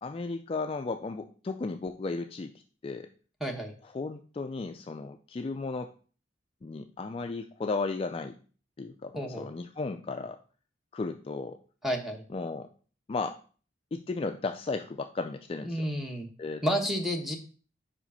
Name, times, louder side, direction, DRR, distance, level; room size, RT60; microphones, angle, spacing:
voice 1, 0.0-3.1 3.8-5.9 6.6-8.3 8.8-10.4 10.9-11.6 12.3-12.7 13.1-13.4 13.9-15.9 16.4-16.6, left 3 dB, 30° left, 6 dB, 0.3 m, -35 dB
voice 2, 3.4-3.7 9.1-9.5 11.8-12.2 15.6-16.3 16.6-17.4, equal, ahead, 3 dB, 1.0 m, -30 dB
5.0 x 5.0 x 5.5 m, 0.40 s
head